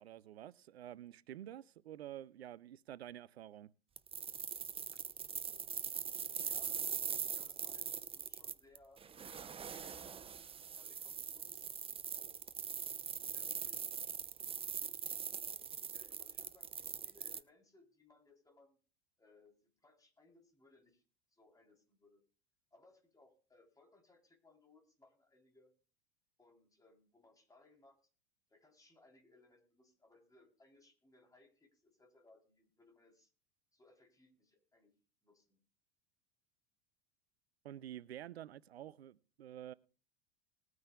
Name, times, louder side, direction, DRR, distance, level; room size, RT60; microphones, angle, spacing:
voice 1, 0.0-3.7 37.6-39.7, right 12 dB, 80° right, 0.5 m, -49 dB
sound 1, 4.0-17.4, right 7 dB, 20° right, 0.7 m, -42 dB
voice 2, 6.3-9.1 9.6-10.3 10.7-11.7 12.1-12.4 13.2-13.9 15.9-18.8 19.2-21.0 21.3-22.2 22.7-25.7 26.4-28.0 28.5-33.3 33.7-35.0 35.2-35.6, left 2 dB, 10° left, 3.6 m, -67 dB
20.5 x 9.4 x 2.3 m
figure-of-eight pair, 80°, 31 cm